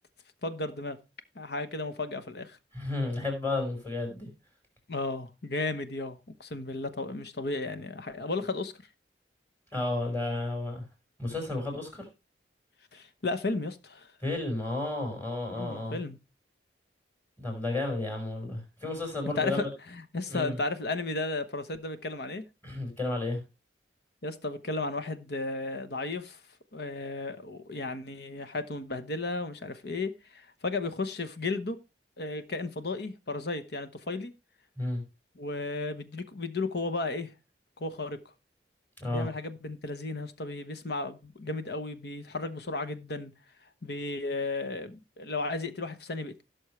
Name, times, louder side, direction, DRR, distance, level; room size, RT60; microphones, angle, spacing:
voice 1, 0.4-1.0 1.3-2.6 4.9-8.7 12.9-14.1 15.5-16.2 19.4-22.4 24.2-26.4 26.7-31.8 32.2-34.3 35.4-37.3 37.8-38.2 39.1-43.3 43.8-46.4, left 3 dB, 65° left, 1.1 m, -34 dB
voice 2, 2.7-4.3 9.7-10.8 11.2-12.1 14.2-16.0 17.4-19.7 20.3-20.6 22.6-23.4 34.8-35.0 39.0-39.3, left 2 dB, 10° left, 4.8 m, -32 dB
16.5 x 6.3 x 3.2 m
head